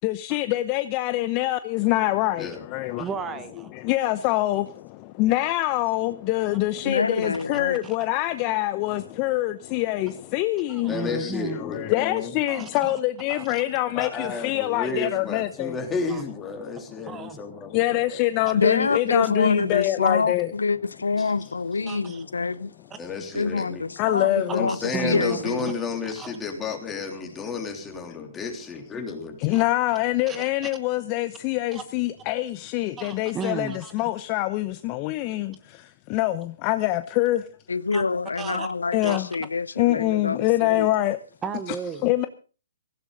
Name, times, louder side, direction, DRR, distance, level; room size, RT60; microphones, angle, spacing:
voice 1, 0.0-3.0 3.7-15.7 17.7-20.5 24.0-24.7 29.4-37.5 38.9-39.3 39.8-41.2 42.0-42.3, left 16 dB, 30° left, 0.7 m, -25 dB
voice 2, 3.0-3.7 7.8-8.0 10.7-11.6 12.5-13.0 13.3-13.7 16.1-16.2 17.1-17.4 21.9-22.2 22.9-23.0 24.7-25.4 26.0-26.4 29.5-29.6 30.3-30.7 31.7-31.8 33.0-34.1 37.9-38.0 38.4-38.7 39.0-39.2 41.4-42.1, right 6 dB, 15° right, 1.0 m, -35 dB
voice 3, 6.8-7.8 18.5-22.7 23.3-25.7 37.7-40.9, left 4 dB, 85° left, 0.7 m, -26 dB
voice 4, 10.9-12.4 14.0-17.8 18.1-18.2 21.2-21.3 23.0-23.8 24.5-29.6, left 4 dB, 15° left, 3.2 m, -32 dB
17.0 x 16.0 x 4.0 m
hypercardioid pair, 135°, 0 cm